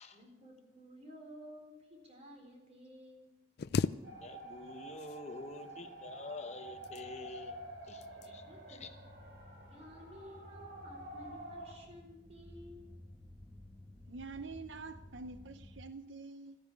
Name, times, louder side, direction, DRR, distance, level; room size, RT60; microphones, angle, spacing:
voice 1, 0.1-3.3 8.2-9.1 9.7-12.9, equal, 35° right, 4.0 m, -54 dB
sound 1, 3.6-4.7 4.9-5.7 6.6-7.4 8.0-8.3 8.8-9.0, left 5 dB, 55° left, 0.4 m, -37 dB
sound 2, 3.6-15.8, left 1 dB, 5° right, 1.1 m, -56 dB
sound 3, 4.0-11.8, right 1 dB, 65° right, 4.3 m, -49 dB
voice 2, 4.2-7.6 7.8-8.4 8.7-8.9, left 3 dB, 35° left, 1.0 m, -47 dB
voice 3, 14.1-16.6, right 3 dB, 80° right, 0.7 m, -46 dB
14.5 x 10.0 x 8.4 m
head